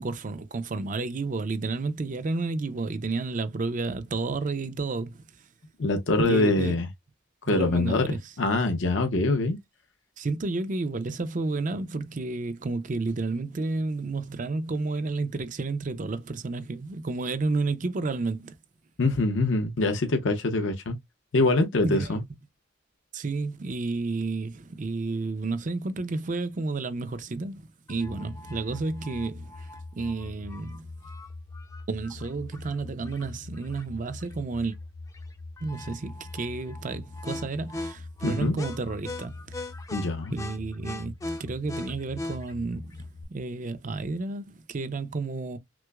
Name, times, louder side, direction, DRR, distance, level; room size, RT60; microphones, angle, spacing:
voice 1, 0.0-5.5 6.2-6.8 7.5-8.3 9.2-9.3 10.2-18.6 21.8-22.2 23.1-30.9 31.9-34.8 35.6-39.7 40.3-45.6, right 3 dB, 40° right, 0.5 m, -31 dB
voice 2, 5.8-6.9 7.5-8.1 8.4-9.6 19.0-21.0 21.3-22.2 38.2-38.6 39.9-40.3, left 2 dB, 75° left, 0.7 m, -24 dB
sound 1, 27.9-43.2, left 2 dB, 15° left, 0.5 m, -40 dB
6.0 x 2.0 x 2.3 m
head